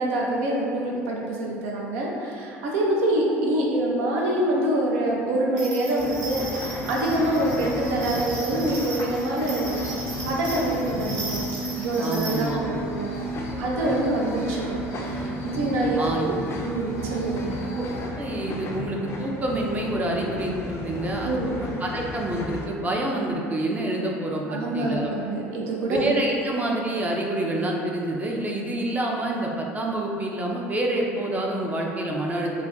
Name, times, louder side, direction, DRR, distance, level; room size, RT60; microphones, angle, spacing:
voice 1, 0.0-9.9 10.3-11.4 11.8-13.1 13.6-16.3 16.6-17.6 21.2-21.6 24.5-26.0, right 1 dB, 75° right, -3 dB, 0.5 m, -26 dB
sound 1, 5.6-12.5, right 2 dB, 55° right, 0.8 m, -37 dB
sound 2, 6.0-22.7, left 2 dB, 35° left, 0.4 m, -35 dB
sound 3, 7.0-18.1, right 3 dB, 90° left, 0.7 m, -35 dB
voice 2, 12.0-12.6 16.0-16.4 18.2-25.1 25.9-32.5, right 1 dB, 20° right, -1 dB, 0.5 m, -27 dB
2.4 x 2.2 x 3.6 m, 2.6 s
hypercardioid pair, 75°, 7 cm